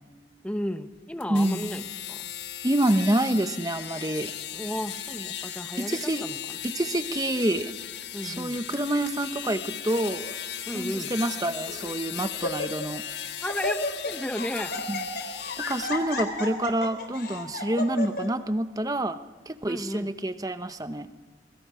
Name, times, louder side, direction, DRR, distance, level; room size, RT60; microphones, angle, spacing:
voice 1, 0.4-2.3 4.5-6.6 8.1-8.6 10.7-11.1 13.4-14.7 19.6-20.1, equal, 5° left, 8 dB, 1.1 m, -34 dB
sound 1, 1.2-15.9, left 10 dB, 80° left, 1.4 m, -37 dB
voice 2, 1.3-1.8 2.6-4.3 5.8-6.2 6.6-7.7 8.2-10.3 10.7-13.0 14.9-15.0 15.6-19.2 19.5-21.1, right 1 dB, 20° right, 10 dB, 0.9 m, -27 dB
Laughter, 9.9-10.3 11.1-11.2 11.7-11.9 12.2-13.0 13.2-18.3, left 2 dB, 60° left, 3.6 m, -33 dB
26.5 x 23.0 x 4.9 m, 1.4 s
head